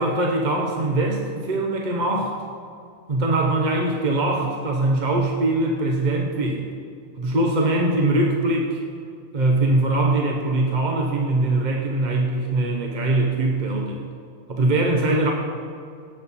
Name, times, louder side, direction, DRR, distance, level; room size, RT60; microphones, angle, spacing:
voice 1, 0.0-2.3 3.1-6.6 7.2-8.8 9.3-14.0 14.5-15.3, right 2 dB, 40° right, 1 dB, 1.0 m, -22 dB
17.5 x 7.7 x 4.2 m, 2.3 s
omnidirectional pair, 1.3 m